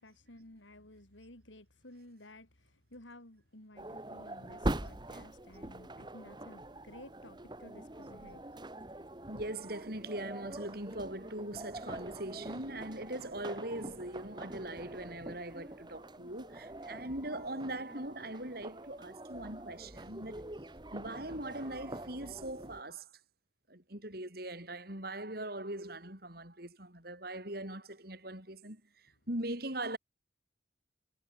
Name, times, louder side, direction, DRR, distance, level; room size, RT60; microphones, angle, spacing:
voice 1, 0.0-2.5 2.9-8.4, left 1 dB, 80° left, 5.2 m, -54 dB
sound 1, 3.8-22.8, right 1 dB, 25° right, 1.4 m, -44 dB
voice 2, 9.3-20.4 20.9-23.1 23.7-28.8 29.3-30.0, right 1 dB, 55° right, 7.1 m, -41 dB
head